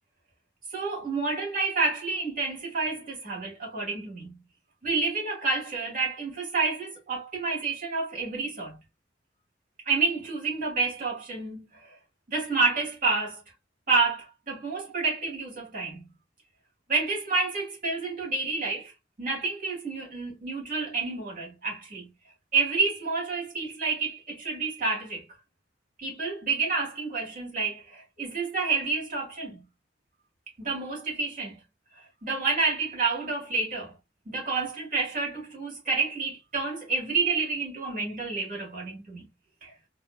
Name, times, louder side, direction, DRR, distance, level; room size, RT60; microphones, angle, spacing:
voice 1, 0.7-4.3 4.8-8.8 9.9-11.9 12.3-13.4 13.9-16.0 16.9-18.9 19.2-22.1 22.5-25.2 26.0-29.6 30.6-31.5 32.0-33.9 34.3-39.3 39.6-39.7, right 4 dB, 50° right, 2.8 m, -29 dB
4.2 x 3.2 x 2.3 m
head